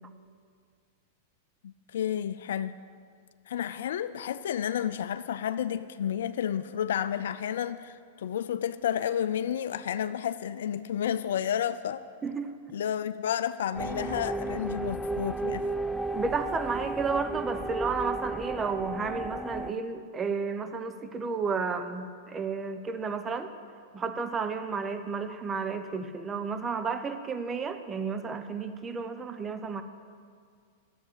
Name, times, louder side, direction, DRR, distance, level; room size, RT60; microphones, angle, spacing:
voice 1, 1.6-2.8 3.5-12.0 12.7-15.6, left 9 dB, 75° left, 0.4 m, -31 dB
voice 2, 12.2-12.6 16.1-23.5 23.9-29.8, right 5 dB, 20° right, 0.7 m, -32 dB
sound 1, 13.7-19.7, right 2 dB, 5° left, 0.4 m, -33 dB
11.5 x 8.1 x 8.1 m
hypercardioid pair, 115°, 0 cm